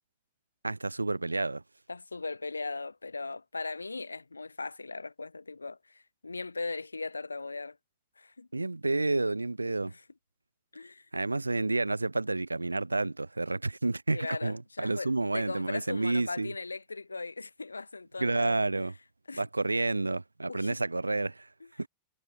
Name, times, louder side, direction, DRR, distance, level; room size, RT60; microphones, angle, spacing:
voice 1, 0.6-1.6 8.5-9.9 11.1-16.5 18.2-18.9 19.4-21.5 21.8-21.9, right 2 dB, 80° right, 5.2 m, -30 dB
voice 2, 1.9-7.8 8.2-8.5 9.9-10.0 10.7-11.1 14.1-18.8 19.3-19.4 20.5-20.7 21.6-21.7, left 3 dB, 80° left, 2.7 m, -38 dB
figure-of-eight pair, 90°, 0 cm